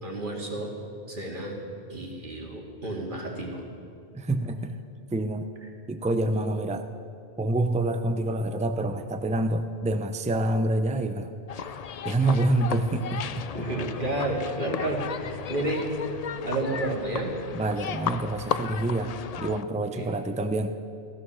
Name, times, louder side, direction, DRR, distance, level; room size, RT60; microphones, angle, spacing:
voice 1, 0.0-0.7 1.1-1.6 1.9-3.6 13.5-15.9 16.4-17.4 19.9-20.1, right 2 dB, 50° right, 0 dB, 2.4 m, -31 dB
voice 2, 4.1-4.8 5.1-5.5 5.9-6.9 7.4-11.3 11.7-11.8 12.0-13.5 17.5-20.7, right 2 dB, 10° right, 9 dB, 0.5 m, -27 dB
sound 1, 11.5-19.6, left 7 dB, 55° left, 0.4 m, -35 dB
16.0 x 14.5 x 6.3 m, 2.5 s
omnidirectional pair, 1.1 m